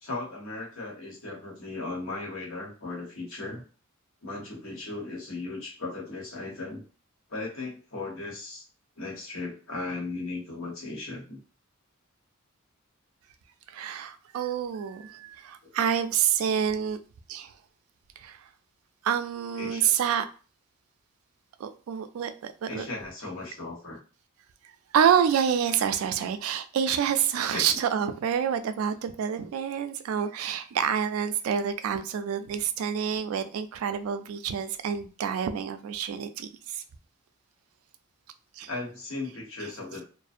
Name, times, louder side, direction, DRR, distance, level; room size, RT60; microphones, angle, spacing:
voice 1, 0.0-3.6 4.2-6.8 7.3-8.6 9.0-11.4 19.6-19.9 22.7-24.0 27.5-27.7 38.7-40.0, left 3 dB, 70° left, 1.0 m, -37 dB
voice 2, 13.7-17.0 17.3-17.5 18.2-18.4 19.0-20.3 21.6-22.9 24.9-36.8 38.6-38.7, right 8 dB, 90° right, 0.3 m, -27 dB
2.5 x 2.0 x 2.4 m
head